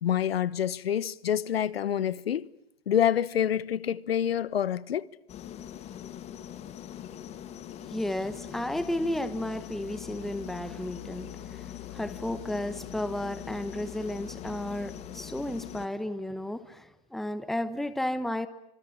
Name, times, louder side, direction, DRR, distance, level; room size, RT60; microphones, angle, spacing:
voice 1, 0.0-2.5 2.9-5.1, left 9 dB, 85° left, 1.2 m, -27 dB
sound 1, 5.3-15.9, left 11 dB, 20° left, 2.0 m, -42 dB
voice 2, 7.9-18.5, left 1 dB, ahead, 1.1 m, -33 dB
26.0 x 25.5 x 8.9 m
hypercardioid pair, 145°, 30 cm